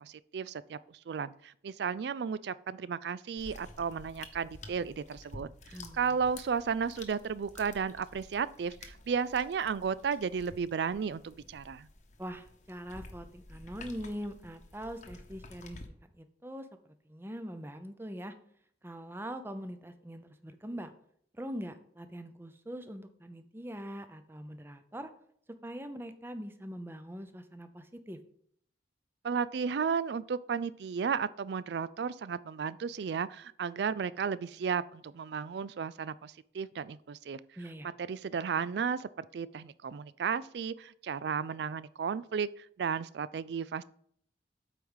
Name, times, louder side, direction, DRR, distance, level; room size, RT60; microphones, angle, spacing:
voice 1, 0.0-11.9 29.2-37.4 38.0-43.8, right 6 dB, 65° right, 18 dB, 0.3 m, -34 dB
sound 1, 3.4-15.9, left 2 dB, 40° left, 1.0 m, -51 dB
voice 2, 5.7-6.2 12.2-16.7 17.0-18.3 18.8-20.9 21.3-25.1 25.6-28.2 37.6-37.9, equal, 10° right, 9 dB, 0.6 m, -42 dB
8.2 x 4.7 x 5.5 m, 0.64 s
head